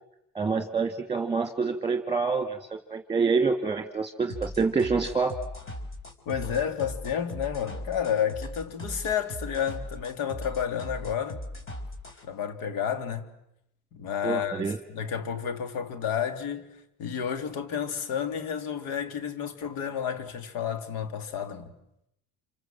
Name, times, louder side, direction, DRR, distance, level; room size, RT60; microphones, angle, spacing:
voice 1, 0.3-2.6 2.9-5.4 14.2-14.8, right 4 dB, 15° right, 2.5 m, -26 dB
sound 1, 4.3-12.2, left 1 dB, 35° left, 4.9 m, -39 dB
voice 2, 6.2-11.4 12.2-13.3 13.9-16.7 17.0-21.7, left 8 dB, 80° left, 3.2 m, -31 dB
28.0 x 26.5 x 7.7 m
cardioid pair, 105°, 34 cm